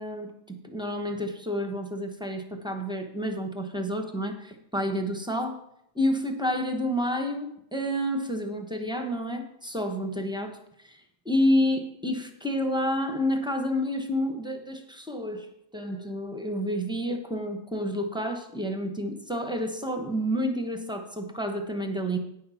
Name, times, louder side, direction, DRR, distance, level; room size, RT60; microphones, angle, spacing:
voice 1, 0.0-5.6 5.9-10.6 11.3-15.5 15.7-22.2, equal, 5° right, 4 dB, 0.5 m, -29 dB
9.2 x 6.5 x 5.6 m, 0.76 s
omnidirectional pair, 1.7 m